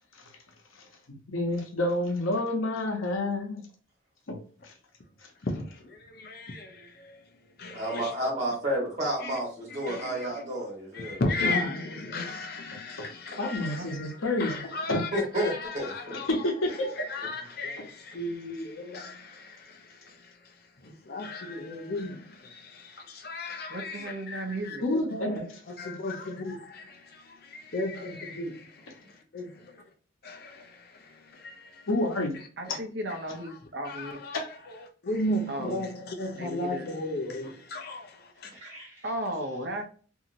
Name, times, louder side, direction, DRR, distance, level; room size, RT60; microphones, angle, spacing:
voice 1, 1.3-3.7 4.3-4.4 4.6-4.7 13.0-13.1 13.4-14.5 14.9-15.0 16.1-17.0 24.8-25.4 31.9-32.4 34.3-34.4, left 1 dB, 85° left, 0.9 m, -28 dB
voice 2, 5.4-7.2 7.6-8.1 9.2-9.4 9.7-10.4 10.9-29.5 30.2-31.9 32.3-32.8 33.1-38.5, left 2 dB, 50° left, 0.6 m, -36 dB
voice 3, 7.7-11.2 15.1-16.2 38.5-39.0, right 1 dB, 35° right, 1.4 m, -31 dB
voice 4, 23.7-24.9 32.6-34.2 35.5-35.8 36.4-36.9 39.0-39.8, right 1 dB, 55° right, 0.7 m, -35 dB
2.8 x 2.7 x 2.5 m
head